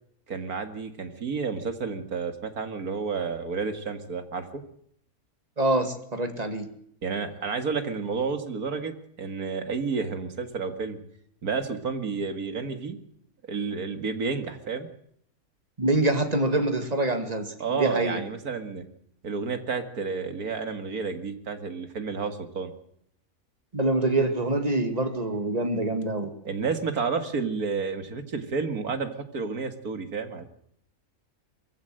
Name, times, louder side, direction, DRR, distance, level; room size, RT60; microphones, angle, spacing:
voice 1, 0.3-4.6 7.0-8.9 9.2-11.0 11.4-13.0 13.5-14.9 17.6-18.8 19.2-22.7 26.5-30.4, right 5 dB, 80° right, 8 dB, 2.3 m, -30 dB
voice 2, 5.6-6.7 15.8-18.2 23.7-26.3, right 2 dB, 25° right, 7 dB, 2.2 m, -25 dB
22.5 x 15.5 x 7.7 m, 0.70 s
omnidirectional pair, 1.5 m